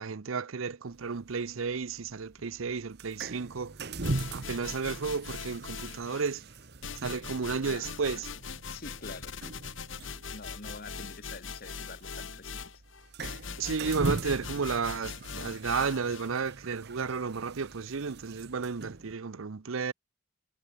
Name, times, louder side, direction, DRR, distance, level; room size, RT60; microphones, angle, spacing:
voice 1, 0.0-3.7 4.3-6.4 7.0-8.3 13.6-19.9, right 5 dB, 80° right, 0.7 m, -32 dB
sound 1, 0.9-19.1, right 2 dB, 55° right, 1.2 m, -41 dB
sound 2, 4.0-6.3 6.8-16.3, left 5 dB, 70° left, 2.0 m, -41 dB
voice 2, 7.7-8.4 8.7-9.4 10.3-12.8, left 3 dB, 50° left, 2.5 m, -47 dB
head